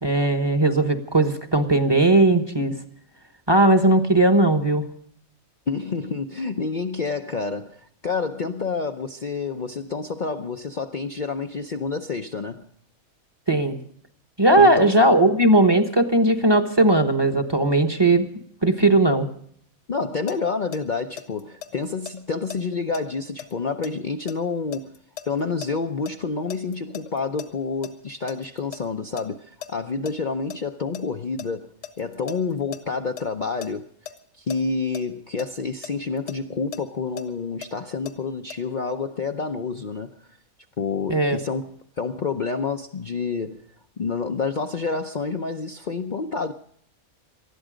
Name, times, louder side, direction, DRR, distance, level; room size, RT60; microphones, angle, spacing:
voice 1, 0.0-2.7 3.5-4.8 13.5-13.8 14.4-18.3 18.6-19.3 41.1-41.4, right 2 dB, 20° right, 1.1 m, -18 dB
voice 2, 5.7-12.7 14.6-15.0 19.9-25.0 25.3-31.7 32.0-33.9 34.4-40.1 40.8-43.6 44.0-46.5, left 4 dB, 45° left, 0.7 m, -28 dB
sound 1, 20.3-26.1 26.5-28.8 29.2-29.3 29.6-30.1 30.5-33.7 34.1-34.2 34.5-34.6 34.9-35.0 35.4-38.1 38.5-38.6, left 9 dB, 60° left, 1.6 m, -38 dB
19.5 x 13.0 x 5.1 m
omnidirectional pair, 1.4 m